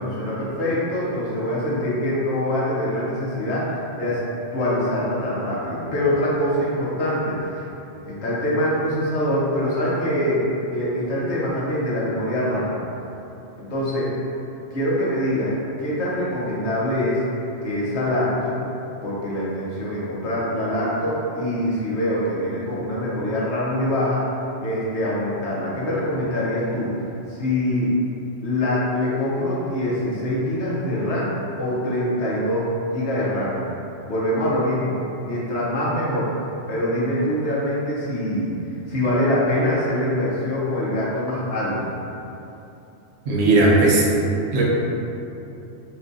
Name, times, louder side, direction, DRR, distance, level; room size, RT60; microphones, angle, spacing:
voice 1, 0.0-4.2 4.5-7.7 8.0-12.8 13.6-14.1 14.7-15.5 15.8-17.2 17.6-18.5 19.0-24.3 24.6-27.0 27.3-27.9 28.4-33.6 34.1-36.3 36.7-38.5 38.9-41.8, left 1 dB, 60° left, -7 dB, 1.1 m, -24 dB
voice 2, 43.3-44.0 44.5-44.7, right 2 dB, 80° right, -3 dB, 1.1 m, -16 dB
5.7 x 2.3 x 2.6 m, 2.8 s
omnidirectional pair, 1.3 m